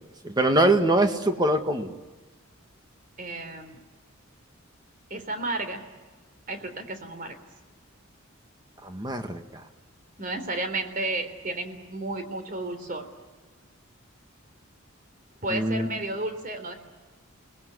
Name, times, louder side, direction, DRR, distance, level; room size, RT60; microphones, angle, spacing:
voice 1, 0.2-1.9 8.8-9.6 15.5-15.9, right 1 dB, 20° right, 6 dB, 1.9 m, -23 dB
voice 2, 3.2-3.8 5.1-5.8 6.5-7.3 10.2-13.1 15.4-16.7, right 2 dB, 40° right, 8 dB, 3.6 m, -32 dB
29.5 x 20.5 x 9.7 m, 1.3 s
head